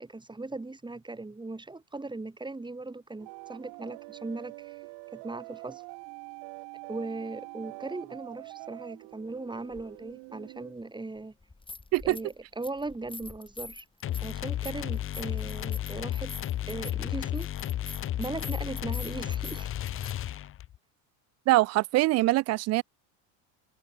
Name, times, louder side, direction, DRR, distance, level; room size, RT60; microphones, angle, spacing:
voice 1, 0.0-4.8 5.1-5.8 6.9-11.3 12.0-13.8 14.2-16.3 16.7-17.5 18.2-19.7, right 2 dB, 10° right, 5.0 m, -38 dB
sound 1, 3.2-10.7, right 28 dB, 70° right, 2.6 m, -45 dB
sound 2, 9.7-9.8 11.4-12.3 12.6-20.1, left 3 dB, 10° left, 4.0 m, -45 dB
sound 3, 14.0-20.8, left 12 dB, 30° left, 0.7 m, -33 dB
voice 2, 21.5-22.8, right 19 dB, 40° right, 0.4 m, -23 dB
supercardioid pair, 115°, 42 cm